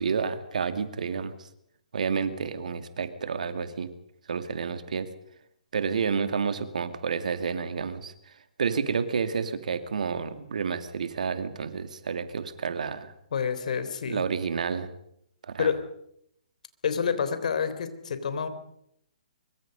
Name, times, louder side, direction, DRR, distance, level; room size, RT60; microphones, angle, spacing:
voice 1, 0.0-1.3 1.9-3.9 4.3-5.1 5.7-8.1 8.6-13.1 14.1-14.9 15.5-15.7, right 6 dB, 65° right, 10 dB, 2.5 m, -30 dB
voice 2, 13.3-14.3 15.6-15.8 16.8-18.5, left 6 dB, 60° left, 11 dB, 3.5 m, -28 dB
24.5 x 23.5 x 5.4 m, 0.72 s
figure-of-eight pair, 130°, 4 cm